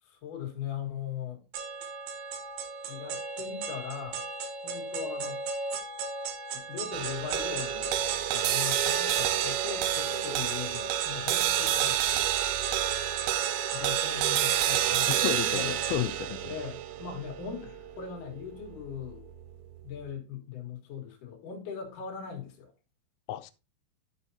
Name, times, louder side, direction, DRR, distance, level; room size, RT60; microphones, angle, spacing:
voice 1, 0.0-1.4 2.9-4.3 4.6-5.6 6.5-7.9 8.3-12.3 13.7-15.8 16.5-17.7 18.0-19.3 19.8-22.7, left 7 dB, 55° left, 2.9 m, -40 dB
sound 1, 1.5-15.9, right 4 dB, 65° right, 2.9 m, -37 dB
sound 2, 6.9-19.4, right 12 dB, 85° right, 3.2 m, -29 dB
voice 2, 15.1-16.5 23.3-23.5, left 13 dB, 85° left, 3.0 m, -32 dB
12.5 x 5.5 x 2.8 m
omnidirectional pair, 5.3 m